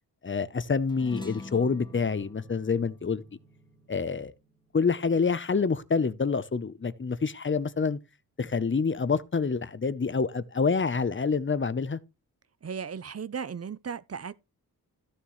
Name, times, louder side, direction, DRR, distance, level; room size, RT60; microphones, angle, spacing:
voice 1, 0.2-3.2 3.9-4.3 4.7-8.0 8.4-12.0, left 5 dB, 30° left, 0.8 m, -27 dB
sound 1, 0.9-5.6, left 2 dB, 10° left, 1.6 m, -46 dB
voice 2, 12.6-14.3, right 6 dB, 40° right, 0.6 m, -36 dB
14.5 x 7.1 x 3.1 m
wide cardioid pair, 115°, 37 cm